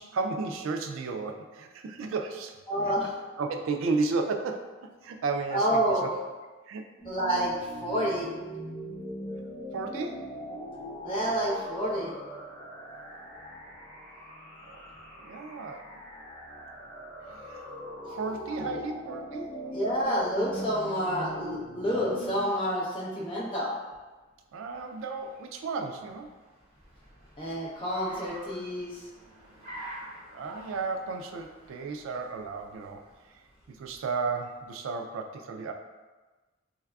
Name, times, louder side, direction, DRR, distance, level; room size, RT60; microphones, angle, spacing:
voice 1, 0.0-2.6 2.9-3.0 3.4-4.8 5.0-6.1 6.7-6.8 9.7-10.2 14.7-14.8 15.2-16.0 17.3-17.7 18.1-19.5 24.5-26.3 30.3-33.0 33.7-35.7, right 4 dB, 75° right, 5 dB, 0.3 m, -33 dB
voice 2, 2.7-3.1 5.5-6.1 7.0-8.3 11.0-12.1 18.6-18.8 19.7-23.7 27.4-29.1, equal, 25° left, -6 dB, 0.7 m, -29 dB
sound 1, 7.0-22.4, equal, 5° left, 1.2 m, -41 dB
Car, 24.3-34.6, right 1 dB, 30° right, 1.3 m, -49 dB
3.4 x 3.3 x 2.3 m, 1.3 s
head